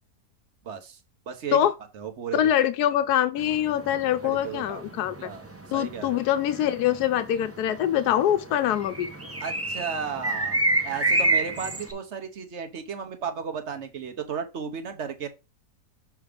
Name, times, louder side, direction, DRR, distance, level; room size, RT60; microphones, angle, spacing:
voice 1, 0.6-1.0 1.3-1.6 1.9-2.4 4.2-4.8 5.2-6.2 9.4-10.6 10.8-15.3, right 7 dB, 50° right, 1.2 m, -34 dB
voice 2, 2.3-5.3 5.7-9.1, left 11 dB, 85° left, 1.1 m, -24 dB
sound 1, 3.4-11.9, right 2 dB, 15° right, 0.6 m, -28 dB
6.3 x 3.5 x 5.0 m
omnidirectional pair, 1.6 m